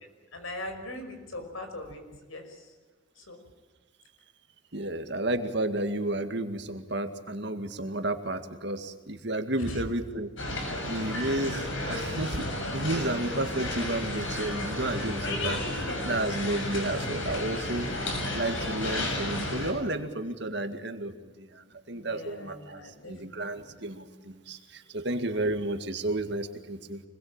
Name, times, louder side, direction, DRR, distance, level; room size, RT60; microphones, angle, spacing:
voice 1, 0.3-2.0 2.3-2.7 3.2-3.4 9.5-9.8 21.9-23.8, left 1 dB, 90° left, 6 dB, 5.8 m, -41 dB
voice 2, 4.7-10.3 10.8-18.1 18.3-22.8 23.1-27.0, right 1 dB, 55° right, 7 dB, 2.1 m, -32 dB
sound 1, 10.4-19.7, left 1 dB, 70° left, 7.0 m, -32 dB
25.5 x 21.5 x 8.9 m, 1.3 s
head